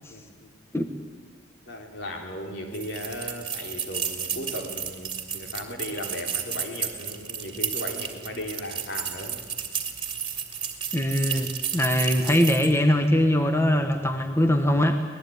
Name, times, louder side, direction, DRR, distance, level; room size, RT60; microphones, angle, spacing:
voice 1, 0.1-0.5 1.7-9.4, left 1 dB, 65° left, 3 dB, 3.9 m, -36 dB
sound 1, 2.7-12.8, right 7 dB, 25° right, 2.6 m, -32 dB
voice 2, 10.9-15.0, equal, 15° left, 6 dB, 1.2 m, -22 dB
25.0 x 19.5 x 9.5 m, 1.5 s
head